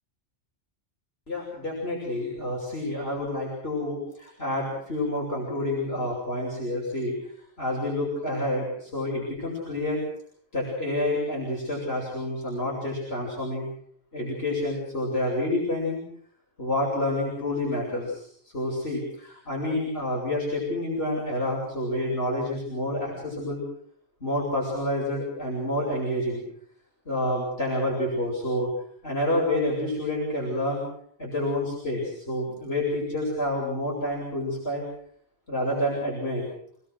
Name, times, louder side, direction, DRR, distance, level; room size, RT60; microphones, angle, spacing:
voice 1, 1.3-7.1 7.6-10.0 10.5-13.7 14.1-16.0 16.6-18.3 18.5-23.6 24.2-26.4 27.1-28.7 29.0-30.8 31.2-34.8 35.5-36.5, left 1 dB, 65° left, -5 dB, 6.9 m, -28 dB
28.0 x 18.0 x 6.4 m, 0.63 s
omnidirectional pair, 1.1 m